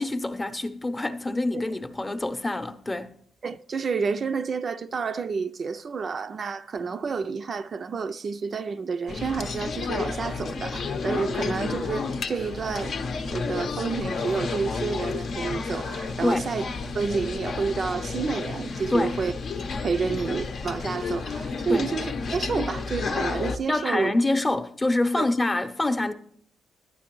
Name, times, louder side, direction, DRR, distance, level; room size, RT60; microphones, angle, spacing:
voice 1, 0.0-3.1 16.2-16.5 18.9-19.2 21.7-21.9 23.7-26.1, left 2 dB, 20° left, 0.7 m, -26 dB
voice 2, 3.4-16.6 16.9-19.3 19.8-24.1 25.2-25.3, right 5 dB, 45° right, 0.4 m, -29 dB
sound 1, 9.1-23.6, left 4 dB, 55° left, 0.7 m, -31 dB
11.5 x 9.4 x 3.0 m
cardioid pair, 90°, 0 cm